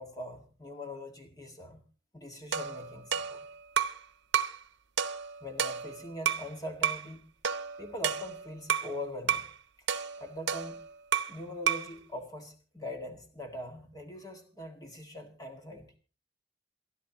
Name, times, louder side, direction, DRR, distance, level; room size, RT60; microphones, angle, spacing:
voice 1, 0.0-1.8 2.1-3.5 5.4-7.2 7.8-9.5 10.2-10.8 11.3-15.9, left 1 dB, 20° left, 4 dB, 1.9 m, -42 dB
sound 1, 2.5-4.0 4.3-4.6 5.0-6.5 6.8-7.1 7.4-8.9 9.3-9.5 9.9-11.4 11.7-11.9, right 8 dB, 70° right, 0.8 m, -31 dB
27.5 x 11.0 x 3.0 m, 0.37 s
head